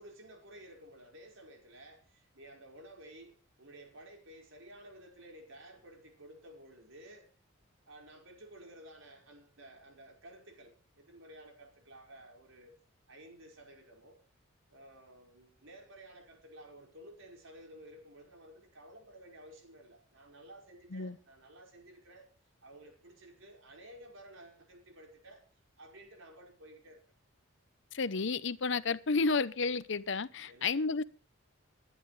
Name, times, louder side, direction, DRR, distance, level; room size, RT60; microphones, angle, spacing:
voice 1, 0.0-7.3 7.9-12.8 13.1-14.2 14.7-22.3 22.6-25.4 25.8-27.0 30.4-30.8, right 1 dB, 70° right, 5.2 m, -54 dB
voice 2, 27.9-31.0, left 4 dB, 60° left, 0.8 m, -31 dB
21.5 x 11.0 x 3.3 m
head